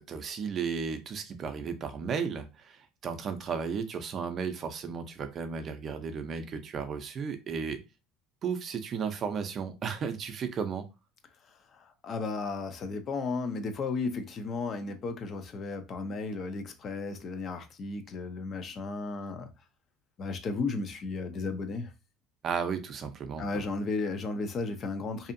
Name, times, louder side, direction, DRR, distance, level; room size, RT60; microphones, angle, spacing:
voice 1, 0.0-7.8 8.4-10.8 22.4-23.5, right 6 dB, 40° right, 0.5 m, -34 dB
voice 2, 11.7-19.5 20.2-21.9 23.4-25.3, left 3 dB, 40° left, 0.5 m, -34 dB
2.7 x 2.4 x 2.5 m
supercardioid pair, 115°, 0 cm